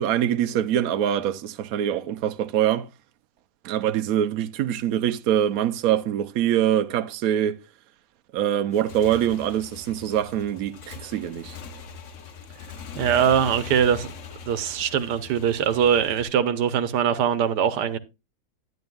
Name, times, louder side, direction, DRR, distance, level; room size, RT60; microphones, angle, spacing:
voice 1, 0.0-2.9 3.6-7.5 8.3-11.6, right 10 dB, 70° right, 1.1 m, -24 dB
Motorcycle / Engine, 8.6-16.2, left 5 dB, 55° left, 1.1 m, -41 dB
voice 2, 13.0-14.1 14.5-18.0, right 8 dB, 90° right, 1.4 m, -22 dB
11.0 x 10.0 x 2.3 m
omnidirectional pair, 1.7 m